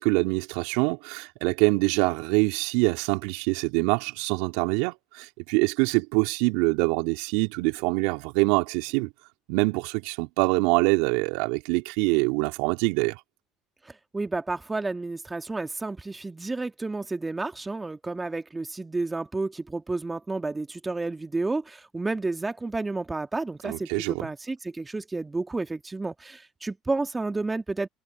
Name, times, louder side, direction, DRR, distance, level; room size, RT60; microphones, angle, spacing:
voice 1, 0.0-9.1 9.5-13.2 23.6-24.3, right 28 dB, 70° right, 2.8 m, -25 dB
voice 2, 13.8-27.9, right 3 dB, 15° right, 1.9 m, -31 dB
hypercardioid pair, 65°, 0 cm